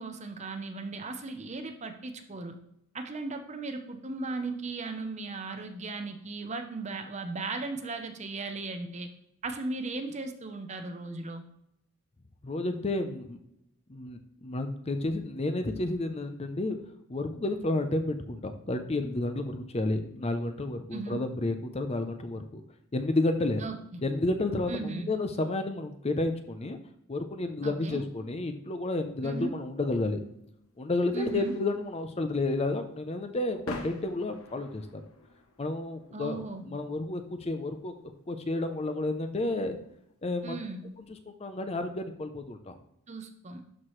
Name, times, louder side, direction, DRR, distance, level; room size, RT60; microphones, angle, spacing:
voice 1, 0.0-2.6 2.9-9.1 9.4-11.4 20.9-21.2 23.6-24.0 24.7-25.1 27.6-28.1 29.2-29.6 31.1-31.5 36.1-36.7 40.4-40.8 43.1-43.6, right 3 dB, 30° right, 7 dB, 0.7 m, -36 dB
voice 2, 12.4-13.4 13.9-16.8 17.1-22.6 22.9-23.6 24.0-26.8 27.1-30.2 30.8-34.8 35.6-39.8 40.2-40.6 41.3-42.7, left 2 dB, 30° left, 7 dB, 0.5 m, -31 dB
sound 1, 29.7-41.1, left 2 dB, 75° left, 1.0 m, -49 dB
12.0 x 4.7 x 3.1 m, 0.79 s
head